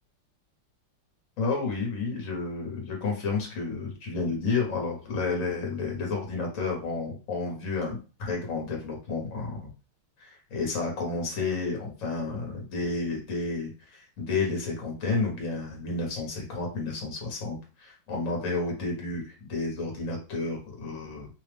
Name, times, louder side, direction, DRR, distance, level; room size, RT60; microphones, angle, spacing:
voice 1, 1.4-9.7 10.2-21.3, left 3 dB, 45° left, 0 dB, 1.2 m, -31 dB
3.4 x 2.4 x 3.3 m, 0.34 s
omnidirectional pair, 2.3 m